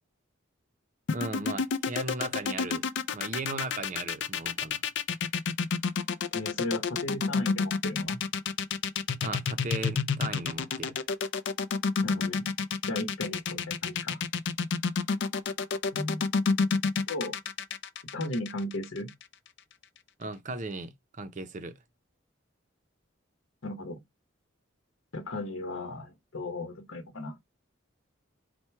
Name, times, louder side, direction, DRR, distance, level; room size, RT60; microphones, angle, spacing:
sound 1, 1.1-19.2, left 5 dB, 60° left, 0.4 m, -29 dB
voice 1, 1.1-2.9 3.1-4.8 9.2-11.0 20.2-21.8, right 2 dB, 40° right, 0.5 m, -37 dB
voice 2, 6.3-8.2 12.0-12.5 12.8-14.2 15.9-16.3 17.1-17.4 18.1-19.1 23.6-24.0 25.1-27.4, left 1 dB, 85° left, 1.0 m, -36 dB
4.3 x 2.2 x 4.5 m
head